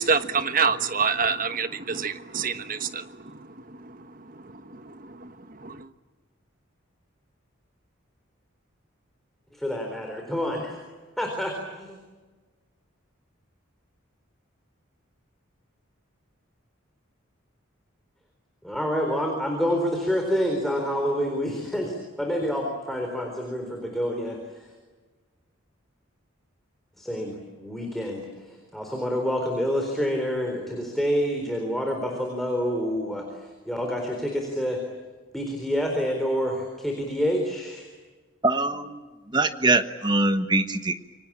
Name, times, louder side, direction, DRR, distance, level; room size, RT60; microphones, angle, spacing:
voice 1, 0.0-3.4 3.7-3.9 4.5-5.3 5.6-5.9, right 5 dB, 40° right, 1.2 m, -27 dB
voice 2, 9.5-10.8 11.2-12.0 18.6-24.7 27.0-34.8 35.3-37.9, equal, ahead, 4.0 m, -28 dB
voice 3, 38.4-39.0 39.3-40.9, right 2 dB, 20° right, 1.3 m, -23 dB
28.0 x 24.5 x 8.7 m
head